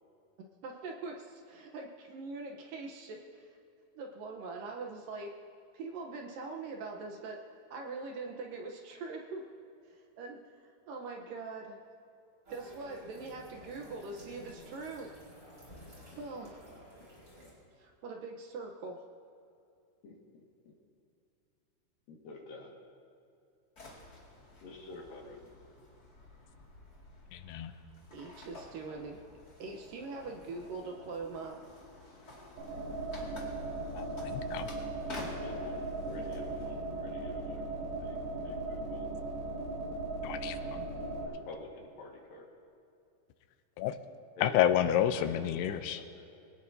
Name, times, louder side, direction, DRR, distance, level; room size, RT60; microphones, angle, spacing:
voice 1, 0.6-3.5 3.9-5.3 5.7-7.4 7.7-9.5 9.9-10.4 10.9-11.8 12.5-15.1 16.1-16.6 17.8-19.1 28.1-29.2 29.6-31.6, right 3 dB, 70° right, 1 dB, 2.4 m, -42 dB
sound 1, 12.4-17.5, equal, 20° right, 5.1 m, -53 dB
voice 2, 16.4-17.1 20.0-20.7 22.1-22.7 24.6-25.6 35.0-37.7 38.0-39.1 40.6-40.7 41.2-42.5 44.4-44.8 45.1-46.2, left 3 dB, 65° left, -1 dB, 3.4 m, -49 dB
sound 2, 23.8-36.7, left 2 dB, 30° left, 2.0 m, -51 dB
voice 3, 27.3-27.7 34.0-34.7 40.2-40.9 43.8-44.0 44.4-46.0, left 10 dB, 90° left, 10 dB, 2.7 m, -30 dB
sound 3, 32.6-41.2, right 2 dB, 85° right, 6.1 m, -38 dB
24.0 x 18.0 x 2.8 m, 2.6 s
omnidirectional pair, 4.6 m